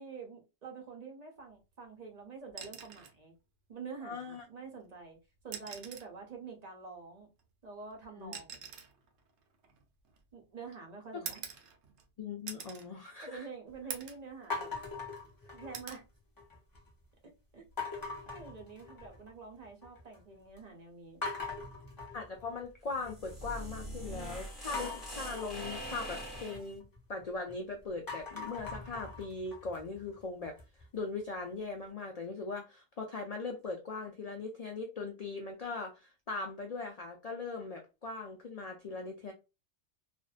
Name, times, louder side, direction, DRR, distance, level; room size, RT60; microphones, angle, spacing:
voice 1, 0.0-3.3 3.7-5.2 5.4-7.3 7.6-8.6 10.3-11.4 13.2-14.7 15.5-16.0 17.5-17.6 18.3-21.2, right 5 dB, 45° right, 0.6 m, -47 dB
sound 1, 2.5-3.2 4.6-4.8 5.4-6.2 7.4-10.4 11.3-12.1 12.5-12.9 13.3-13.4 13.9-14.3 14.7-15.3 15.7-16.1 17.5-17.8, right 7 dB, 70° right, 0.9 m, -45 dB
voice 2, 4.0-4.4 8.2-8.3 12.2-13.5 22.1-26.8 27.1-30.6 30.9-39.3, left 4 dB, 85° left, 0.3 m, -40 dB
sound 2, 14.5-16.0 16.4-16.9 17.8-19.3 19.6-20.2 20.6-20.7 21.2-23.3 24.7-27.5 27.9-30.8, left 3 dB, 25° left, 0.5 m, -42 dB
sound 3, 22.9-26.7, right 1 dB, ahead, 0.9 m, -43 dB
2.5 x 2.1 x 2.4 m
omnidirectional pair, 1.3 m